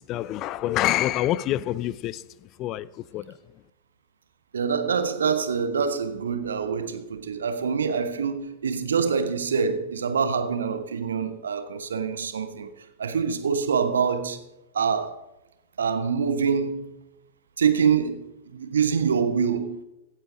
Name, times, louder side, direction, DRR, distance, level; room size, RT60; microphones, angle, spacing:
voice 1, 0.0-3.3, left 14 dB, 35° left, 0.4 m, -27 dB
voice 2, 4.5-12.7 13.0-14.4 14.7-15.2 15.8-16.9 17.6-18.2 18.5-19.8, right 6 dB, 70° right, 1.0 m, -25 dB
16.0 x 9.0 x 3.6 m
figure-of-eight pair, 90°, 0 cm